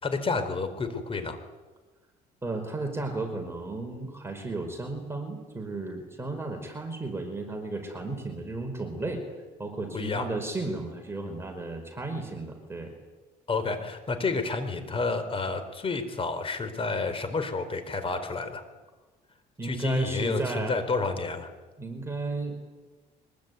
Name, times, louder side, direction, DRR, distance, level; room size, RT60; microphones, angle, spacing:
voice 1, 0.0-1.4 9.9-10.3 13.5-18.6 19.6-21.5, left 3 dB, 35° left, 10 dB, 4.1 m, -30 dB
voice 2, 2.4-9.2 9.6-12.9 19.6-20.8 21.8-22.6, right 2 dB, 15° right, 3 dB, 5.0 m, -34 dB
24.5 x 21.5 x 9.4 m, 1.2 s
cardioid pair, 110°, 17 cm